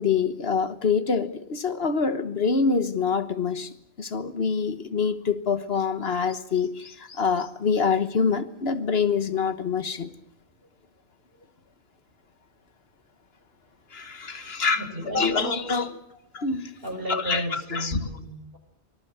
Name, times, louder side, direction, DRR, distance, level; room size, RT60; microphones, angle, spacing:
voice 1, 0.0-10.1 13.9-14.9 15.1-15.9 16.3-16.7 17.1-18.1, left 5 dB, 65° left, 1.5 m, -26 dB
voice 2, 14.3-15.7 16.1-16.2 16.8-18.6, right 1 dB, 55° right, 6.9 m, -34 dB
25.5 x 20.5 x 8.0 m
omnidirectional pair, 1.1 m